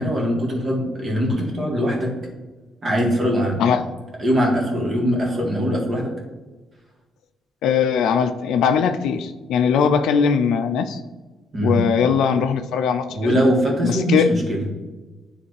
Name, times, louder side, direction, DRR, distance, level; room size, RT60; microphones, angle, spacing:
voice 1, 0.0-2.1 2.8-3.6 4.2-6.1 11.5-11.8 13.1-14.6, equal, 35° right, -1 dB, 2.0 m, -21 dB
voice 2, 7.6-11.0 11.6-13.4 13.8-14.3, left 7 dB, 85° left, 8 dB, 0.4 m, -20 dB
9.4 x 3.3 x 3.2 m, 1.2 s
cardioid pair, 90°, 0 cm